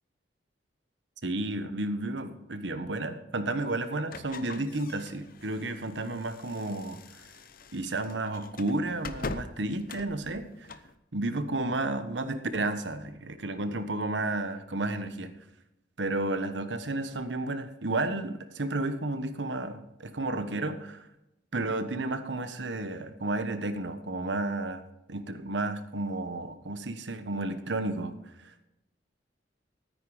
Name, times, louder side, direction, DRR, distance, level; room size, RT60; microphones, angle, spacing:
voice 1, 1.2-7.0 7.7-10.5 11.1-15.3 16.0-21.1 21.5-24.8 25.1-28.1 28.4-28.7, right 2 dB, 85° right, 10 dB, 1.3 m, -32 dB
sound 1, 4.1-10.9, left 3 dB, 55° left, 0.8 m, -43 dB
13.5 x 9.4 x 5.0 m, 0.88 s
head